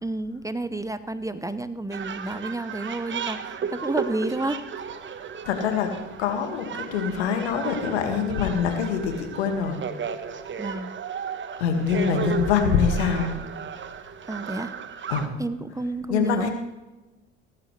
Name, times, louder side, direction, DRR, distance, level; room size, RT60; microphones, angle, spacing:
voice 1, 0.0-4.6 10.6-10.9 12.1-12.4 14.3-14.8 15.4-16.5, right 2 dB, 10° right, 12 dB, 0.8 m, -30 dB
sound 1, 1.9-15.3, right 7 dB, 35° right, 1.3 m, -34 dB
voice 2, 5.5-9.8 11.6-13.4 15.1-15.3 16.1-16.5, left 6 dB, 80° left, 5 dB, 2.0 m, -24 dB
17.0 x 14.5 x 3.3 m, 1.1 s
hypercardioid pair, 65°, 33 cm